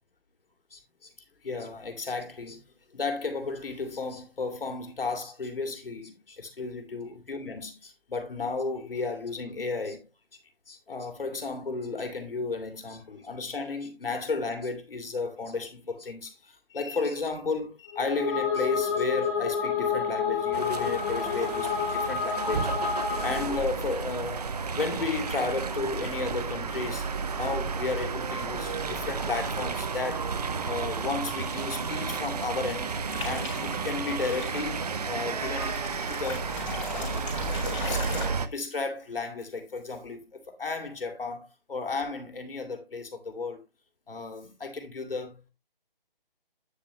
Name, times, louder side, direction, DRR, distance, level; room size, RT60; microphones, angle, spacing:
voice 1, 0.7-1.1 1.4-2.6 2.9-10.0 10.7-22.7 23.2-24.4 24.7-27.1 27.3-30.3 30.6-32.9 33.2-34.8 35.0-35.8 36.1-36.6 36.9-37.3 37.8-43.6 44.1-45.4, left 3 dB, 70° left, 2.9 m, -33 dB
sound 1, 17.9-23.7, left 6 dB, 15° left, 1.3 m, -29 dB
sound 2, 20.5-38.5, right 5 dB, 45° right, 1.0 m, -32 dB
sound 3, 33.1-33.8 34.3-34.5 35.4-38.3, left 4 dB, 35° left, 4.5 m, -38 dB
9.9 x 7.3 x 3.0 m
figure-of-eight pair, 160°, 29 cm